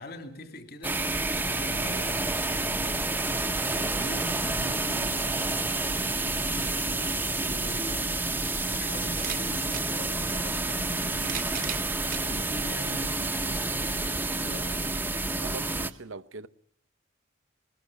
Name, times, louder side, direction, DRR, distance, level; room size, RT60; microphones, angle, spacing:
voice 1, 0.0-14.9, left 1 dB, 50° left, 2.6 m, -43 dB
sound 1, 0.8-15.9, right 2 dB, 10° right, 0.9 m, -29 dB
sound 2, 9.2-9.9 10.9-12.3 13.0-13.1 14.4-14.5, right 9 dB, 45° right, 1.1 m, -37 dB
voice 2, 15.4-16.5, right 3 dB, 80° right, 1.0 m, -41 dB
21.5 x 20.0 x 7.1 m
head